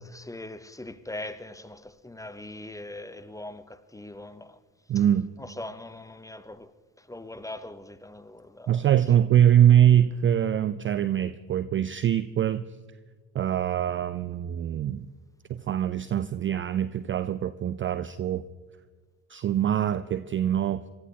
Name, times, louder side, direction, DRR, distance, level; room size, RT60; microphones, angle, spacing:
voice 1, 0.0-4.6 5.4-6.7 7.0-8.9, left 2 dB, 5° left, 0.8 m, -41 dB
voice 2, 4.9-5.3 8.7-12.6 13.3-15.1 15.5-18.4 19.3-20.8, right 10 dB, 25° right, 0.4 m, -23 dB
27.5 x 13.5 x 2.9 m
figure-of-eight pair, 50°, 48 cm